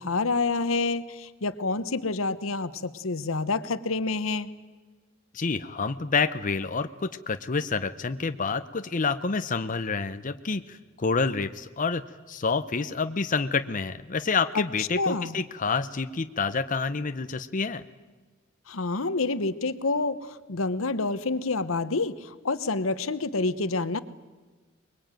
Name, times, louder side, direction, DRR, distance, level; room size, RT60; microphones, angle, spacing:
voice 1, 0.0-4.5 14.5-15.4 18.7-24.0, left 3 dB, 80° left, 14 dB, 1.1 m, -28 dB
voice 2, 5.3-12.0 12.3-17.8, left 4 dB, 40° left, 10 dB, 0.7 m, -28 dB
24.0 x 22.0 x 9.1 m, 1.3 s
head